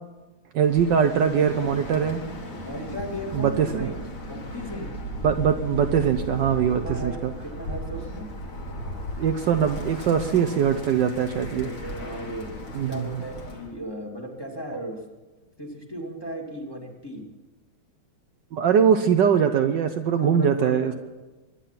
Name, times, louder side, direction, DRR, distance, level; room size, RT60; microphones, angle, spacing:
voice 1, 0.5-2.2 3.3-3.9 5.2-7.3 9.2-11.7 12.7-13.0 18.5-20.9, right 7 dB, 65° right, 7 dB, 1.3 m, -22 dB
Bird, 0.6-13.7, equal, 40° left, 2.1 m, -36 dB
voice 2, 2.6-4.9 6.8-7.1 7.4-8.3 11.1-12.5 12.9-15.0 15.6-17.2 20.2-20.9, equal, 10° left, -1 dB, 2.3 m, -36 dB
23.5 x 10.0 x 5.8 m, 1.2 s
omnidirectional pair, 2.3 m